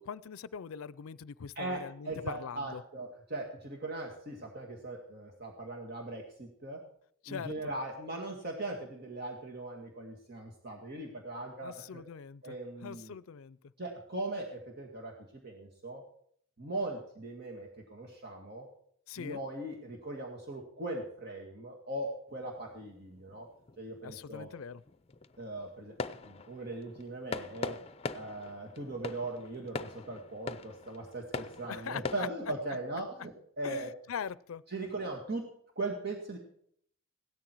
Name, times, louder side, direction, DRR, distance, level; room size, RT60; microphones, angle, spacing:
voice 1, 0.0-2.1 2.4-2.8 7.2-7.7 11.6-12.4 12.8-13.6 19.1-19.4 24.0-24.8 31.7-32.3 33.6-34.6, left 7 dB, 85° left, 19 dB, 0.5 m, -42 dB
voice 2, 1.6-6.8 7.3-12.0 12.4-13.1 13.8-16.0 16.6-18.7 19.2-23.5 23.8-24.5 25.4-26.0 26.2-27.8 28.1-33.9 34.7-35.4 35.8-36.4, right 2 dB, 50° right, 0 dB, 2.1 m, -39 dB
sound 1, 22.3-32.3, left 4 dB, 30° left, 0.6 m, -43 dB
16.5 x 13.0 x 4.6 m, 0.65 s
head